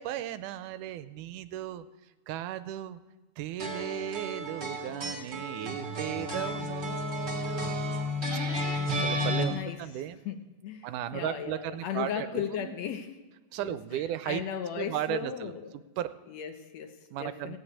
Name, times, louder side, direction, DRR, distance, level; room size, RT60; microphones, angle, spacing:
voice 1, 0.0-1.9 2.3-3.0 3.4-8.2 8.9-10.2 10.8-12.7 13.5-14.4 14.8-15.5 16.0-16.1 17.1-17.6, right 12 dB, 85° right, 13 dB, 2.1 m, -36 dB
sound 1, 3.6-9.4, left 1 dB, 25° right, 2.1 m, -32 dB
voice 2, 11.1-13.2 13.6-15.7 16.3-17.6, left 8 dB, 70° left, 7 dB, 1.9 m, -36 dB
17.0 x 7.6 x 8.6 m, 1.2 s
omnidirectional pair, 3.6 m